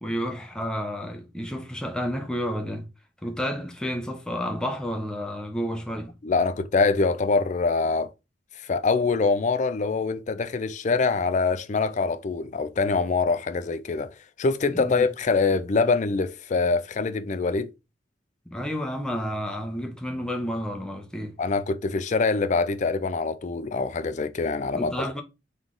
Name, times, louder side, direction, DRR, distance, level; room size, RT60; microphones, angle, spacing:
voice 1, 0.0-2.9 3.2-6.2 14.7-15.1 18.5-21.4 24.7-25.2, equal, 5° left, 0.7 m, -31 dB
voice 2, 6.2-8.1 8.6-17.7 21.4-25.1, left 4 dB, 40° left, 0.4 m, -24 dB
3.7 x 3.1 x 3.8 m
head